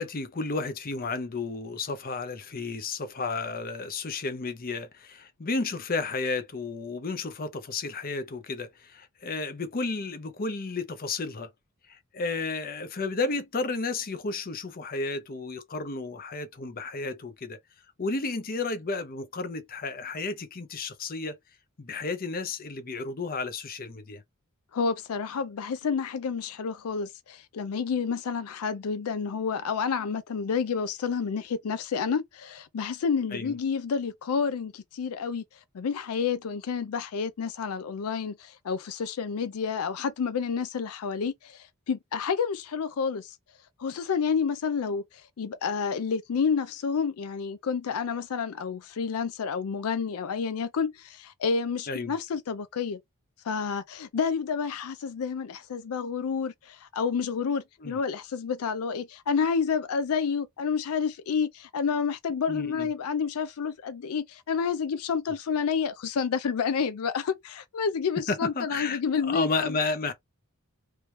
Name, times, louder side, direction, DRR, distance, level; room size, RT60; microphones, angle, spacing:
voice 1, 0.0-11.5 11.9-17.6 18.0-21.4 21.8-24.2 33.3-33.5 51.9-52.1 57.8-58.0 62.5-62.9 68.3-70.1, left 3 dB, 40° left, 0.7 m, -32 dB
voice 2, 24.7-35.4 35.7-43.4 43.8-53.0 53.4-69.8, left 6 dB, 85° left, 0.4 m, -29 dB
3.1 x 3.0 x 3.2 m
head